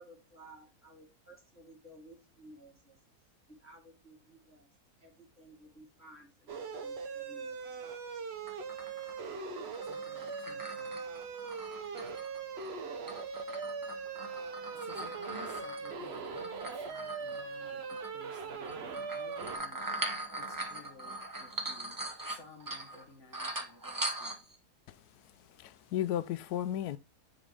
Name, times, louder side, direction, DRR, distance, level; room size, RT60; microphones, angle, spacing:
voice 1, 0.0-3.0 3.5-4.7 5.0-7.7 8.0-8.2, right 1 dB, 10° left, 2.2 m, -56 dB
sound 1, 6.5-19.6, right 5 dB, 50° right, 1.0 m, -40 dB
sound 2, 8.5-12.7 13.1-17.5 17.9-18.1 18.6-23.0 23.3-24.6, right 2 dB, 20° right, 0.7 m, -41 dB
voice 2, 9.8-11.1 14.7-19.9 20.4-24.4, left 3 dB, 55° left, 1.2 m, -55 dB
voice 3, 25.6-27.0, left 11 dB, 80° left, 1.1 m, -34 dB
7.2 x 3.9 x 3.4 m
omnidirectional pair, 1.7 m